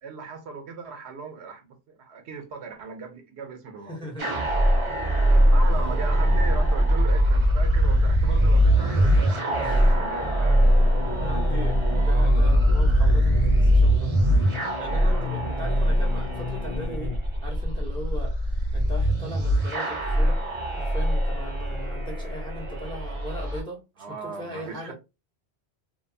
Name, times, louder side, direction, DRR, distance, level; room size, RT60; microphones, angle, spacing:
voice 1, 0.0-4.1 5.5-10.6 15.0-15.3 24.0-24.9, right 4 dB, 80° right, 0.9 m, -37 dB
voice 2, 3.9-4.6 5.2-5.5 6.2-6.3 6.9-7.1 8.3-9.2 9.5-10.0 11.0-17.2 17.4-20.4 20.7-24.9, equal, 5° left, 0.6 m, -39 dB
sound 1, 4.2-23.6, equal, 35° right, 0.6 m, -22 dB
sound 2, 8.8-17.2, left 6 dB, 60° left, 0.3 m, -35 dB
2.6 x 2.2 x 2.6 m
omnidirectional pair, 1.1 m